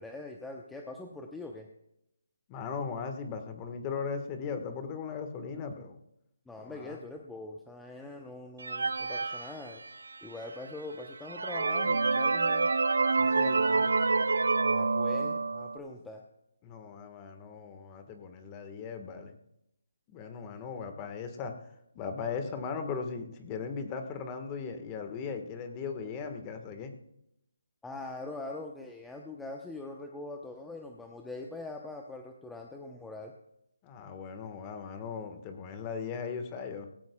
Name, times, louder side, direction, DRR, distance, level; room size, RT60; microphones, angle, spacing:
voice 1, 0.0-1.7 6.5-9.8 10.2-12.7 14.6-16.2 20.4-20.5 27.8-33.3, left 2 dB, 5° left, 2 dB, 0.8 m, -43 dB
voice 2, 2.5-6.0 6.6-7.0 13.2-13.9 16.6-19.3 20.1-21.5 21.9-26.9 33.8-36.9, left 5 dB, 20° left, 6 dB, 1.4 m, -38 dB
sound 1, 8.6-10.2 10.8-10.9 11.3-15.8, right 4 dB, 75° right, 0.6 m, -27 dB
18.5 x 15.5 x 2.3 m, 0.81 s
figure-of-eight pair, 155°, 0 cm